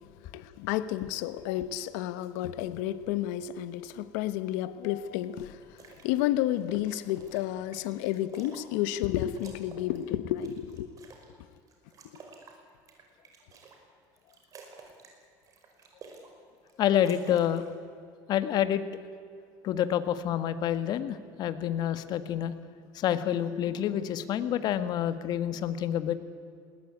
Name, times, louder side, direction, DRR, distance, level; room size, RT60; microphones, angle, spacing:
voice 1, 0.0-10.9 11.4-11.5, left 13 dB, 85° left, 1.1 m, -31 dB
sound 1, 5.6-6.1 6.5-9.1 9.3-11.3 11.7-13.8 14.1-15.2 15.4-16.3 16.6-17.7, right 4 dB, 40° right, 5.3 m, -51 dB
voice 2, 16.8-17.6 18.3-18.8 19.6-22.5 22.9-26.1, left 10 dB, 55° left, 1.7 m, -28 dB
20.5 x 19.0 x 9.9 m
cardioid pair, 125°, 9 cm